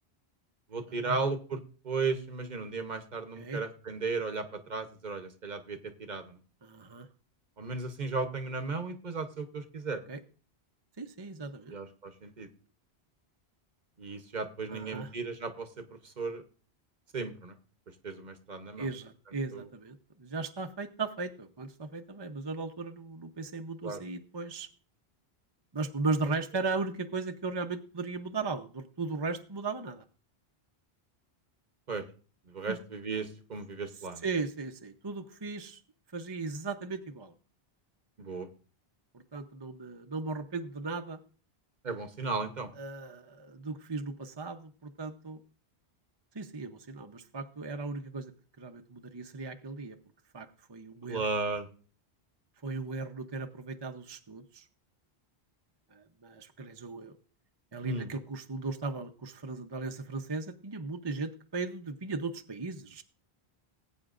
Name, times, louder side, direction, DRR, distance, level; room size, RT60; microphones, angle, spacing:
voice 1, 0.7-1.6 1.8-6.4 7.6-10.0 11.7-12.5 14.0-15.7 16.0-16.4 17.1-17.5 18.0-18.9 19.5-19.6 23.8-24.0 31.9-32.0 32.5-34.2 38.2-38.5 41.8-42.7 51.1-51.6 57.8-58.1, right 4 dB, 45° right, 8 dB, 1.0 m, -35 dB
voice 2, 6.6-7.1 10.1-10.2 11.0-11.7 14.7-15.1 18.8-24.7 25.7-30.0 32.7-32.8 34.2-35.8 36.1-37.3 39.1-41.2 42.8-45.4 46.3-48.3 48.6-50.0 50.3-51.3 52.6-54.7 55.9-57.2 57.7-63.0, right 3 dB, 30° right, 6 dB, 0.7 m, -37 dB
19.5 x 8.7 x 2.5 m, 0.40 s
omnidirectional pair, 1.1 m